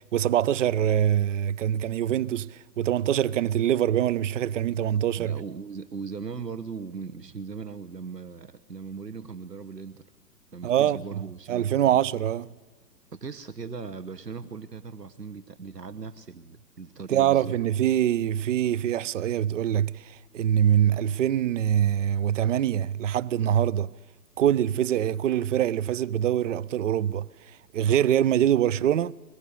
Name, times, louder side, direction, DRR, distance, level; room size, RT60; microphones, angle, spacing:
voice 1, 0.0-5.4 10.6-11.0 11.5-12.5 17.1-23.9 24.4-27.3 27.7-29.1, right 10 dB, 50° right, 0.6 m, -24 dB
voice 2, 5.2-10.0 10.5-12.0 13.1-17.5, right 5 dB, 85° right, 1.1 m, -39 dB
22.0 x 21.0 x 8.5 m
figure-of-eight pair, 110°, 47 cm